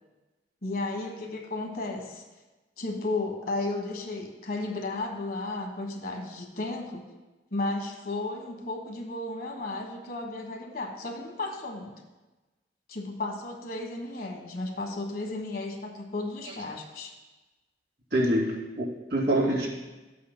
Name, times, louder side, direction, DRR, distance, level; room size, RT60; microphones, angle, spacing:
voice 1, 0.6-2.2 2.8-7.0 7.5-11.9 12.9-17.1, left 2 dB, 55° left, 2 dB, 1.4 m, -34 dB
voice 2, 18.1-19.7, right 1 dB, 70° right, -4 dB, 2.8 m, -26 dB
13.5 x 8.4 x 2.2 m, 1.1 s
head